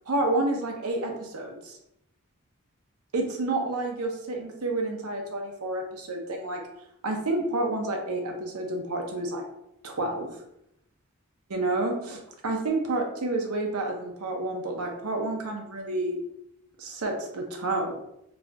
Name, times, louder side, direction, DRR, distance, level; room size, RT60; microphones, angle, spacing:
voice 1, 0.1-1.8 3.1-6.6 7.0-9.4 9.8-10.3 11.5-16.2 16.8-17.9, right 2 dB, 90° right, 2 dB, 0.7 m, -29 dB
4.1 x 2.3 x 2.8 m, 0.80 s
head